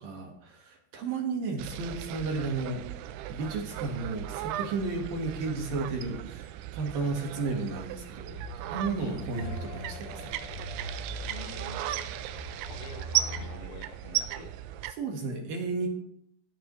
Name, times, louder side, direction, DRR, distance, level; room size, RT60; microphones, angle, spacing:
voice 1, 0.0-2.9 3.3-8.4 8.7-10.4 15.0-15.9, right 3 dB, 60° right, 2 dB, 3.0 m, -33 dB
sound 1, 1.6-14.9, right 13 dB, 85° right, 3.0 m, -36 dB
sound 2, 8.3-13.5, equal, 20° right, 1.4 m, -42 dB
sound 3, 9.3-14.1, left 6 dB, 45° left, 3.1 m, -50 dB
voice 2, 11.3-12.2 12.7-14.5 15.8-15.9, left 5 dB, 80° left, 5 dB, 3.7 m, -47 dB
17.0 x 13.0 x 3.2 m, 0.70 s
omnidirectional pair, 5.1 m